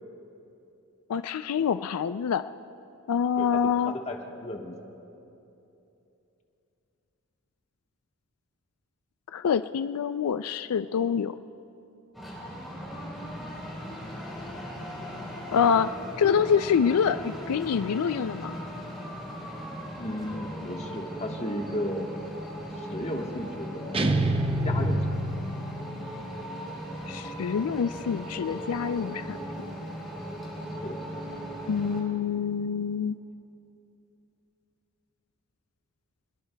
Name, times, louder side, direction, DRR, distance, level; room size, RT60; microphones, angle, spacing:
voice 1, 1.1-2.4 3.1-3.9 9.3-11.3 15.5-15.9 16.2-18.5 27.1-29.4 31.7-33.2, left 7 dB, 90° left, 11 dB, 0.4 m, -26 dB
voice 2, 3.4-4.8 20.0-22.2 22.7-24.0 24.6-25.3 30.8-31.0, left 1 dB, 30° left, 1 dB, 1.3 m, -35 dB
sound 1, 12.1-32.0, equal, ahead, 3.9 m, -38 dB
sound 2, 23.9-26.0, right 1 dB, 25° right, 0.6 m, -26 dB
26.0 x 21.0 x 2.3 m, 2.9 s
head